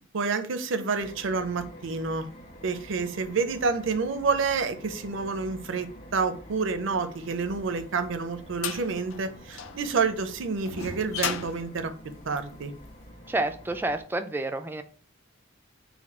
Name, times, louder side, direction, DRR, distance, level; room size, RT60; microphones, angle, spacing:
voice 1, 0.1-2.3 2.6-5.9 6.1-11.9 12.3-12.7, right 4 dB, 65° right, 0.6 m, -28 dB
sound 1, 1.0-14.0, equal, 50° left, 1.6 m, -48 dB
sound 2, 7.6-12.9, left 7 dB, 85° left, 0.5 m, -36 dB
voice 2, 13.3-14.8, right 2 dB, 10° right, 0.3 m, -29 dB
4.2 x 2.3 x 4.2 m
head